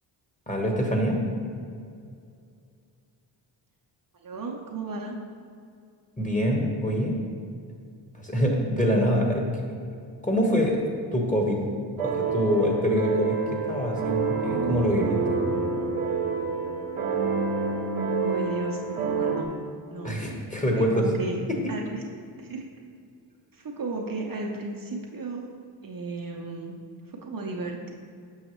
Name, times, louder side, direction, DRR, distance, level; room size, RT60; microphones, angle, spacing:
voice 1, 0.5-1.2 6.2-7.2 8.1-9.6 10.2-10.8 11.1-11.6 12.0-13.4 13.7-15.4 20.0-21.0 21.5-21.6, equal, 15° left, 0 dB, 1.1 m, -25 dB
voice 2, 4.1-5.2 17.8-19.6 19.9-20.3 20.7-21.4 21.7-22.1 22.4-22.6 23.5-25.5 25.8-27.9, right 3 dB, 45° right, 0 dB, 0.7 m, -35 dB
sound 1, 12.0-19.4, right 4 dB, 80° right, 0.8 m, -28 dB
6.3 x 5.6 x 3.0 m, 2.3 s
cardioid pair, 55°, 50 cm